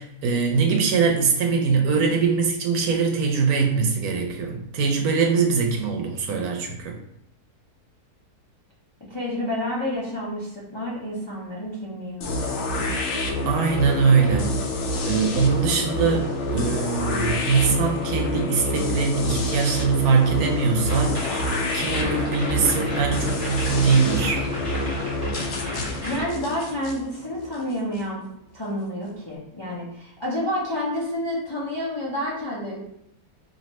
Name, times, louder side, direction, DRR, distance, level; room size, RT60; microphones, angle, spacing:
voice 1, 0.0-6.9 13.4-14.5 15.0-21.5 21.7-24.4, right 5 dB, 70° right, 3 dB, 1.0 m, -22 dB
voice 2, 9.1-12.9 26.0-28.2 28.5-32.8, left 1 dB, 35° left, -6 dB, 0.4 m, -29 dB
sound 1, 12.2-28.0, left 2 dB, 70° left, 0.7 m, -27 dB
sound 2, 20.9-26.3, left 2 dB, 30° right, 1.0 m, -33 dB
3.1 x 2.8 x 4.0 m, 0.76 s
omnidirectional pair, 1.8 m